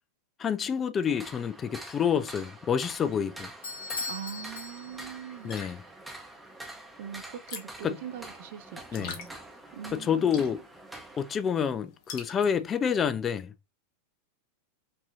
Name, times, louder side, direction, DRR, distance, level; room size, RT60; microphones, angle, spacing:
voice 1, 0.4-3.5 5.4-5.8 7.8-7.9 8.9-9.2 9.9-10.6 11.2-13.5, left 7 dB, 25° left, 0.4 m, -28 dB
sound 1, 1.0-11.4, right 2 dB, 5° right, 0.8 m, -46 dB
Bell / Doorbell, 3.6-5.3, left 3 dB, 70° left, 1.2 m, -38 dB
voice 2, 4.1-5.5 7.0-9.3 9.7-10.6, right 9 dB, 50° right, 0.5 m, -42 dB
sound 2, 5.3-12.8, left 6 dB, 45° left, 0.9 m, -47 dB
5.4 x 2.7 x 2.5 m
figure-of-eight pair, 90°, 0 cm